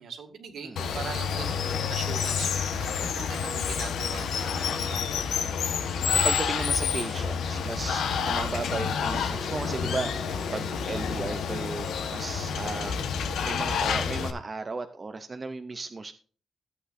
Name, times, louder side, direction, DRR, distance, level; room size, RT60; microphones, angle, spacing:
voice 1, 0.0-5.3, right 6 dB, 65° right, 5 dB, 1.8 m, -41 dB
Water, 0.8-14.3, left 6 dB, 85° left, 1.0 m, -29 dB
voice 2, 5.9-13.1 13.4-16.1, right 3 dB, 25° right, 7 dB, 0.5 m, -35 dB
Telephone, 9.3-11.3, left 1 dB, 5° right, 2.3 m, -44 dB
14.0 x 8.3 x 2.5 m, 0.42 s
wide cardioid pair, 165°, 0 cm